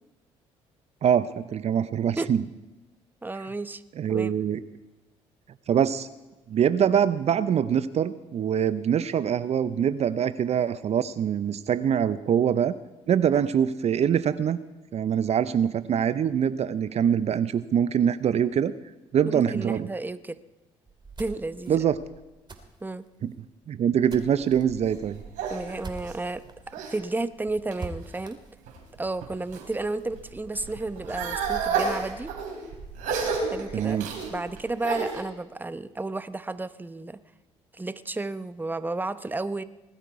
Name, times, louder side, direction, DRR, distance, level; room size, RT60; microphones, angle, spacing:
voice 1, 1.0-2.4 4.0-4.6 5.7-6.1 6.5-12.7 13.1-14.6 14.9-18.7 19.1-19.9 21.7-22.0 23.2-23.3 23.7-25.2 33.7-34.1, right 8 dB, 50° right, 14 dB, 0.6 m, -24 dB
voice 2, 3.2-3.8 4.1-4.3 13.3-13.4 19.3-20.4 21.2-21.8 22.8-23.1 25.5-28.4 29.0-32.3 33.5-34.0 34.3-37.2 37.7-39.6, right 2 dB, 15° right, 13 dB, 0.8 m, -32 dB
sound 1, 20.9-26.5 26.9-27.0 27.3-27.4 27.8-29.9, right 3 dB, 30° right, 2.7 m, -44 dB
sound 2, 24.4-27.0 27.5-28.1 28.7-29.7 30.0-35.2, right 5 dB, 70° right, 3.8 m, -32 dB
20.0 x 12.0 x 4.8 m, 1.1 s
hypercardioid pair, 50°, 14 cm